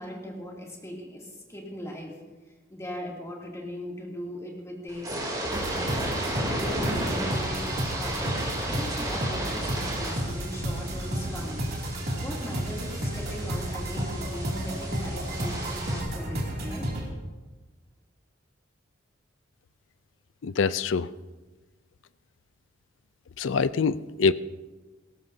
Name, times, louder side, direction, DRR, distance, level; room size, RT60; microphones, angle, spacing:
voice 1, 0.0-2.1 2.7-5.1 6.4-8.2 8.7-11.6 12.2-16.9, equal, 15° left, -2 dB, 2.7 m, -39 dB
sound 1, 4.9-16.0, right 1 dB, 20° right, 3.1 m, -34 dB
sound 2, 5.4-17.1, equal, 55° right, 2.7 m, -32 dB
voice 2, 20.4-21.1 23.4-24.3, left 5 dB, 75° left, 15 dB, 0.5 m, -24 dB
19.5 x 17.0 x 2.7 m, 1.2 s
head